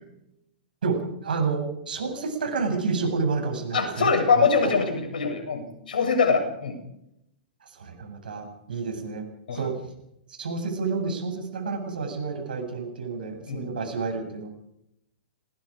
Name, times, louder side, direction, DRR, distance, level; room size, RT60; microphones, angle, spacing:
voice 1, 0.8-4.5 7.7-9.2 9.5-9.7 10.4-14.5, right 4 dB, 75° right, 5 dB, 7.9 m, -29 dB
voice 2, 3.7-6.8 9.5-9.6 13.5-13.7, left 5 dB, 75° left, 4 dB, 7.8 m, -23 dB
27.0 x 20.5 x 5.1 m, 0.80 s
hypercardioid pair, 115°, 5 cm